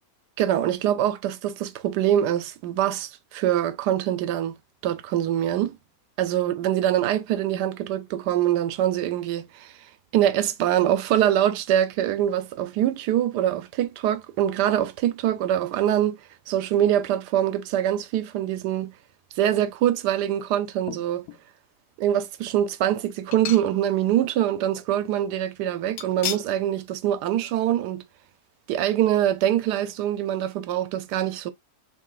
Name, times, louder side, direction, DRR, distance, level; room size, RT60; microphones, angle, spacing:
voice 1, 0.4-4.6 4.8-5.8 6.2-9.7 10.1-16.2 16.5-18.9 19.4-21.3 22.0-28.0 28.7-31.5, right 11 dB, 85° right, 1.2 m, -24 dB
sound 1, 20.8-21.4 22.0-22.1 23.3-24.1 24.4-24.5 26.0-26.6 27.0-27.1 27.5-27.6, left 9 dB, 70° left, 1.0 m, -35 dB
3.2 x 3.0 x 3.8 m
omnidirectional pair, 1.7 m